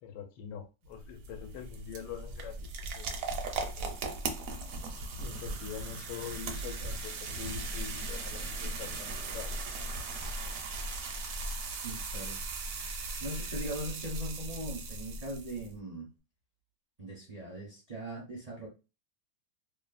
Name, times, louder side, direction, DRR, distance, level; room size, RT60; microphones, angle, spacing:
voice 1, 0.0-2.7 2.9-3.2 5.2-9.6, left 8 dB, 80° left, 1.3 m, -44 dB
sound 1, 0.9-15.7, right 3 dB, 70° right, 0.8 m, -38 dB
sound 2, 5.3-13.7, left 2 dB, 55° left, 0.6 m, -54 dB
voice 2, 11.8-12.4 12.7-12.9 13.2-16.1 17.0-18.7, right 1 dB, 45° right, 0.5 m, -40 dB
3.1 x 2.1 x 2.4 m
omnidirectional pair, 1.9 m